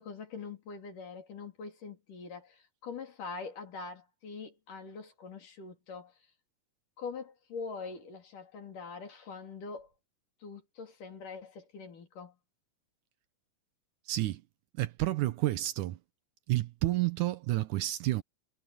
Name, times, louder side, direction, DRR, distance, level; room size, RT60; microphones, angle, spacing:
voice 1, 0.0-6.1 7.0-9.9 10.4-12.3, left 4 dB, 70° left, 5.0 m, -43 dB
voice 2, 14.1-14.4 14.8-16.0 16.5-18.2, right 16 dB, 75° right, 2.1 m, -30 dB
omnidirectional pair, 3.9 m